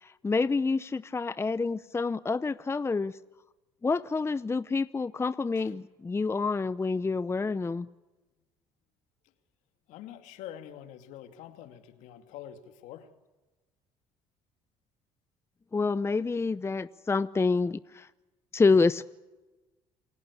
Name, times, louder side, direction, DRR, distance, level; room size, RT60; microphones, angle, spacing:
voice 1, 0.0-3.1 3.8-7.9 15.7-18.1 18.5-19.1, left 4 dB, 20° left, 0.7 m, -27 dB
voice 2, 9.9-13.1, left 11 dB, 75° left, 2.5 m, -45 dB
28.5 x 16.5 x 8.4 m
supercardioid pair, 70°, 13 cm